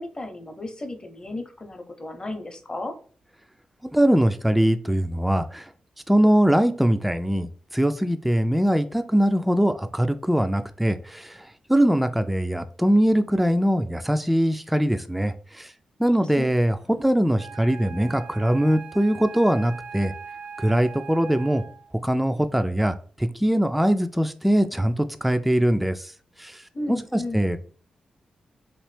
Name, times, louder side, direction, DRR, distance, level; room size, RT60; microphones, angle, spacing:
voice 1, 0.0-2.9 16.4-16.5 16.8-16.9 26.7-27.5, left 2 dB, 30° left, 5 dB, 0.8 m, -34 dB
voice 2, 3.9-5.7 6.1-15.7 16.0-20.1 20.6-21.6 22.0-26.1 26.4-26.6 26.9-27.7, equal, 5° right, 9 dB, 0.4 m, -22 dB
Wind instrument woodwind instrument, 17.3-21.9, right 6 dB, 80° right, 0.5 m, -40 dB
3.0 x 2.6 x 3.3 m, 0.42 s
supercardioid pair, 45°, 3 cm